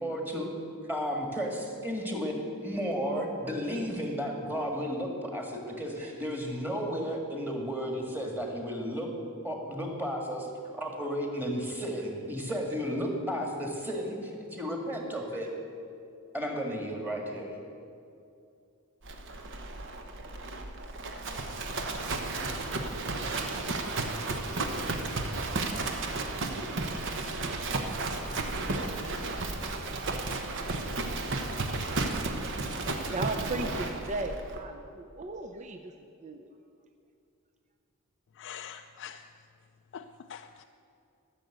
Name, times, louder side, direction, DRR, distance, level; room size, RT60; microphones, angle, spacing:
voice 1, 0.0-0.5 0.9-2.4 2.6-9.1 9.4-10.5 10.7-15.5 16.3-17.6, equal, 10° right, 1 dB, 1.8 m, -33 dB
Livestock farm animals working animals, 19.0-34.6, right 2 dB, 60° right, 1.0 m, -33 dB
voice 2, 32.5-36.5, right 2 dB, 35° right, 5 dB, 0.5 m, -37 dB
voice 3, 38.3-39.3 39.9-40.6, left 8 dB, 55° left, 6 dB, 0.4 m, -44 dB
13.5 x 6.9 x 7.9 m, 2.6 s
head